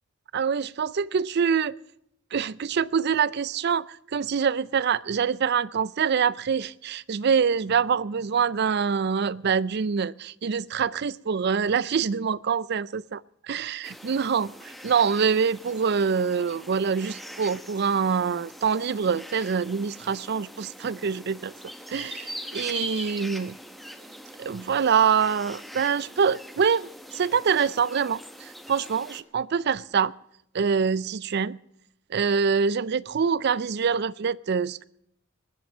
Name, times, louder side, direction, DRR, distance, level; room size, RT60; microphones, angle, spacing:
voice 1, 0.3-1.8 2.3-13.2 13.5-14.5 14.8-21.5 21.9-23.5 24.4-30.1 30.5-31.6 32.1-34.8, right 6 dB, 55° right, 0.5 m, -25 dB
sound 1, 13.8-29.2, equal, ahead, 1.1 m, -42 dB
21.0 x 7.7 x 7.2 m
head